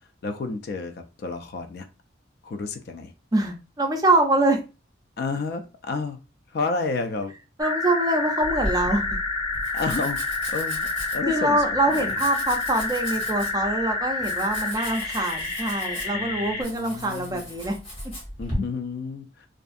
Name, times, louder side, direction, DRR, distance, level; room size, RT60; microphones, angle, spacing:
voice 1, 0.2-1.8 2.4-3.1 5.2-6.2 6.5-7.3 9.7-10.2 10.5-11.6 11.9-12.1 16.1-17.5 18.4-19.5, left 3 dB, 50° left, 7 dB, 0.3 m, -31 dB
voice 2, 3.3-4.6 7.6-9.1 11.3-17.8, right 1 dB, 20° right, 2 dB, 0.4 m, -24 dB
sound 1, 7.6-16.6, left 3 dB, 85° left, 1.3 m, -29 dB
Domestic sounds home sounds, 8.4-18.6, equal, 30° left, 1.2 m, -37 dB
2.5 x 2.3 x 2.5 m, 0.30 s
head